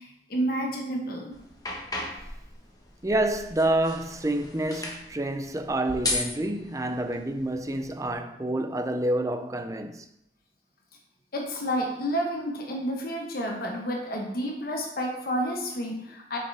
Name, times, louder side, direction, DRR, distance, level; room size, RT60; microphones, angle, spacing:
voice 1, 0.0-1.4 11.3-16.4, equal, 55° left, 1.1 m, -30 dB
sound 1, 1.3-8.1, left 2 dB, 20° left, 1.3 m, -37 dB
voice 2, 3.0-10.1, right 1 dB, 20° right, 0.6 m, -28 dB
7.5 x 6.8 x 3.5 m
head